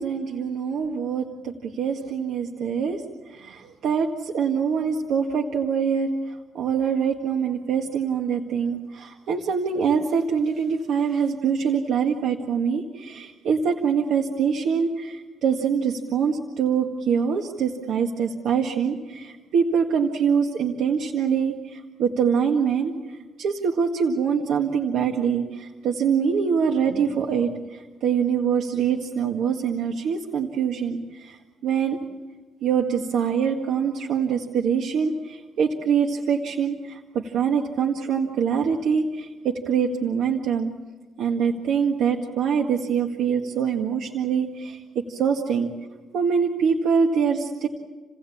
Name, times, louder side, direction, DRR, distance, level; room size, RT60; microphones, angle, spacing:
voice 1, 0.0-3.0 3.3-6.1 6.5-22.9 23.4-27.5 28.0-31.4 31.6-32.0 32.6-40.7 41.2-44.8 45.1-45.7 46.1-47.7, right 6 dB, 75° right, 1 dB, 1.8 m, -24 dB
29.5 x 17.0 x 8.6 m, 1.3 s
cardioid pair, 90°, 0 cm